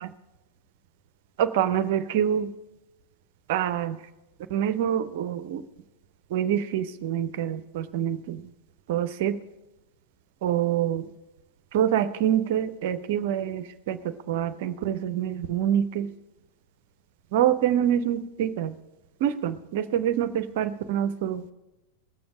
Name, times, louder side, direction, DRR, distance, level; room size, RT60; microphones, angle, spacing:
voice 1, 1.6-2.4 3.5-3.9 4.5-5.0 6.3-6.8 7.1-7.3 7.9-8.2 8.9-9.3 10.4-11.0 11.7-13.4 14.3-15.8 17.3-18.7 19.2-19.3 19.8-20.3 20.6-21.3, right 10 dB, 50° right, 11 dB, 0.4 m, -24 dB
19.0 x 6.9 x 4.9 m, 1.0 s
figure-of-eight pair, 90°, 0 cm